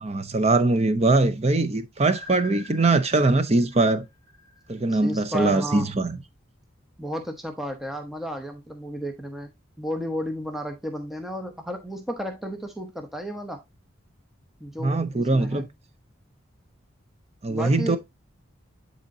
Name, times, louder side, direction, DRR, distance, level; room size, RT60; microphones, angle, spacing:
voice 1, 0.0-4.0 4.7-6.2 14.8-15.7 17.4-18.0, right 2 dB, 30° right, 0.6 m, -22 dB
sound 1, 2.1-5.1, left 2 dB, 55° right, 1.6 m, -46 dB
voice 2, 4.9-5.9 7.0-9.5 9.8-13.6 14.6-15.7 17.5-18.0, equal, ahead, 0.8 m, -33 dB
10.0 x 4.3 x 2.7 m
head